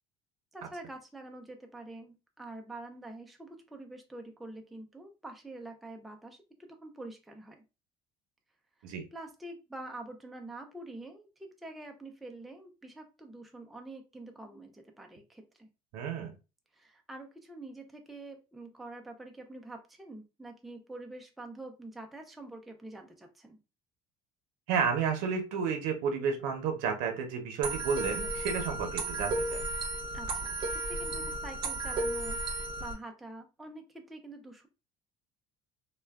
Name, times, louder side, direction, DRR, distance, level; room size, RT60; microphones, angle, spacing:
voice 1, 0.5-7.6 8.8-15.7 16.7-23.6 30.1-34.7, right 2 dB, ahead, 3 dB, 0.3 m, -46 dB
voice 2, 15.9-16.3 24.7-29.6, right 6 dB, 85° right, 4 dB, 0.6 m, -31 dB
sound 1, 27.6-32.9, right 2 dB, 35° right, 0.7 m, -34 dB
2.2 x 2.1 x 3.3 m, 0.30 s
cardioid pair, 140°, 14 cm